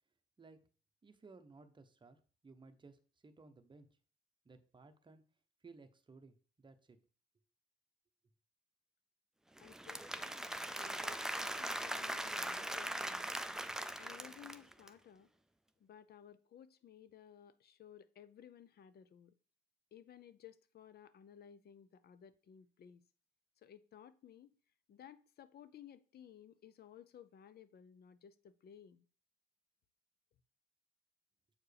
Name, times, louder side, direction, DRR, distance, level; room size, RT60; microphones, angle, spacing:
voice 1, 1.0-3.9 4.4-5.2 5.6-7.0, right 3 dB, 25° right, 0.8 m, -59 dB
voice 2, 9.6-10.3 10.8-13.3 14.0-15.3 15.8-19.3 19.9-23.0 23.6-24.5 24.9-29.1, left 9 dB, 55° left, 0.5 m, -57 dB
Applause / Crowd, 9.6-14.9, right 1 dB, 5° right, 0.4 m, -41 dB
7.2 x 4.5 x 3.3 m
cardioid pair, 90°, 20 cm